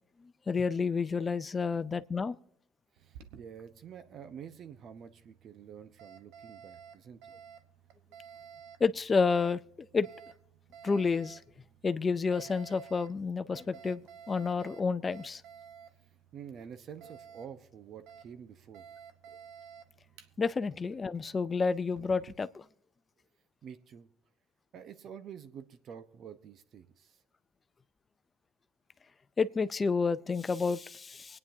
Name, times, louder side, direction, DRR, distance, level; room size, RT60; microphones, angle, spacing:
voice 1, 0.5-2.4 8.8-9.6 9.9-10.1 10.8-11.4 11.8-14.0 14.3-15.4 20.4-22.6 29.4-31.4, left 4 dB, 30° left, 14 dB, 0.5 m, -30 dB
voice 2, 2.9-7.4 16.3-18.9 23.6-24.1 24.7-27.2, right 8 dB, 60° right, 11 dB, 1.0 m, -48 dB
Alarm, 3.0-22.3, right 7 dB, 85° right, 1.0 m, -54 dB
24.5 x 9.7 x 2.8 m, 0.71 s
supercardioid pair, 85°, 0 cm